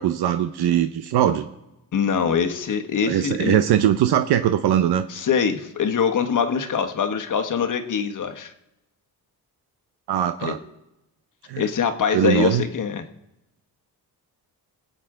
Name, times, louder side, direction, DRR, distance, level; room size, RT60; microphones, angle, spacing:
voice 1, 0.0-1.5 3.1-5.1 10.1-10.6 11.5-11.6 12.1-12.6, right 10 dB, 85° right, 9 dB, 0.7 m, -21 dB
voice 2, 1.9-3.6 5.1-8.5 10.4-10.6 11.6-13.1, left 6 dB, 55° left, 6 dB, 1.3 m, -23 dB
22.0 x 8.0 x 3.7 m, 0.93 s
cardioid pair, 100°, 38 cm